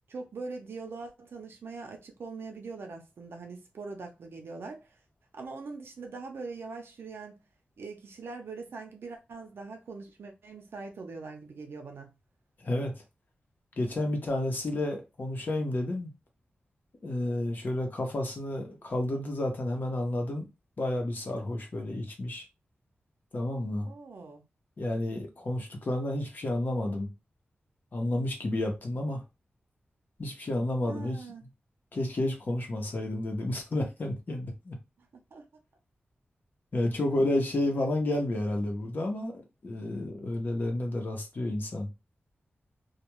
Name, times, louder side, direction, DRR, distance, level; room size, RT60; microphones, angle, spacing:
voice 1, 0.1-4.9 5.3-7.4 7.8-12.1 23.9-24.4 30.8-31.4 35.0-35.5, right 4 dB, 80° right, 0.7 m, -42 dB
voice 2, 12.6-12.9 13.8-16.1 17.0-20.5 20.8-22.4 23.3-23.9 24.8-27.1 27.9-29.2 30.2-31.2 31.9-34.8 36.7-41.9, left 1 dB, 50° left, 0.9 m, -31 dB
2.4 x 2.3 x 3.0 m
wide cardioid pair, 105°, 4 cm